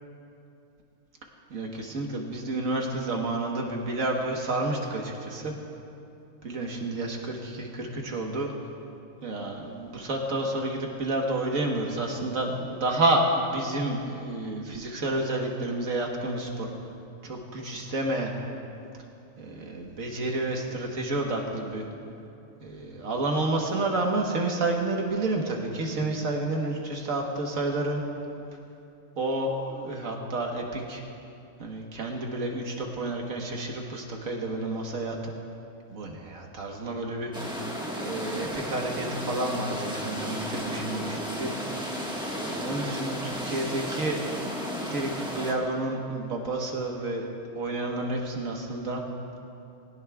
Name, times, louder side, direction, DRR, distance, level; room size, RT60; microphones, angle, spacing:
voice 1, 1.5-5.5 6.4-8.5 9.2-16.7 17.2-18.3 19.4-21.8 22.6-28.0 29.2-31.0 31.6-35.2 35.9-37.6 38.0-41.5 42.4-44.2 44.8-47.2 47.5-49.0, right 2 dB, 80° right, 1 dB, 1.7 m, -30 dB
sound 1, 37.3-45.5, equal, 5° right, 1.3 m, -33 dB
20.5 x 17.0 x 2.3 m, 2.7 s
omnidirectional pair, 1.4 m